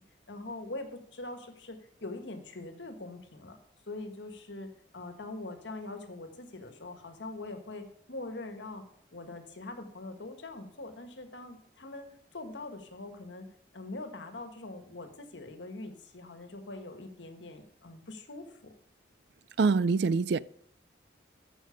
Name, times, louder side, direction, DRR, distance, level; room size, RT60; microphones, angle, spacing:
voice 1, 0.3-3.6 3.9-8.8 9.1-12.1 12.3-13.5 13.7-18.7, left 2 dB, 75° left, 1.5 m, -43 dB
voice 2, 19.6-20.4, right 4 dB, 65° right, 0.4 m, -24 dB
13.5 x 6.1 x 5.1 m
head